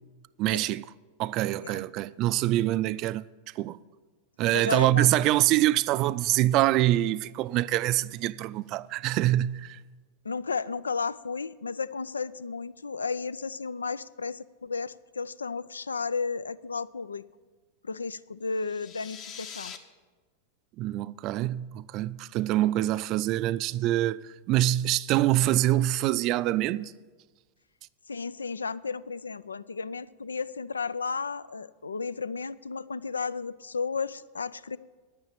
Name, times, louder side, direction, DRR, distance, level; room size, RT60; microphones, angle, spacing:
voice 1, 0.4-0.8 1.2-3.3 3.6-3.8 4.4-9.8 20.8-26.9, right 14 dB, 45° right, 0.3 m, -25 dB
voice 2, 4.5-5.1 10.2-17.2 17.8-19.7 28.1-34.8, left 4 dB, 90° left, 0.3 m, -33 dB
sound 1, 18.5-19.8, left 6 dB, 45° left, 1.2 m, -43 dB
10.0 x 9.4 x 7.4 m
hypercardioid pair, 95°, 0 cm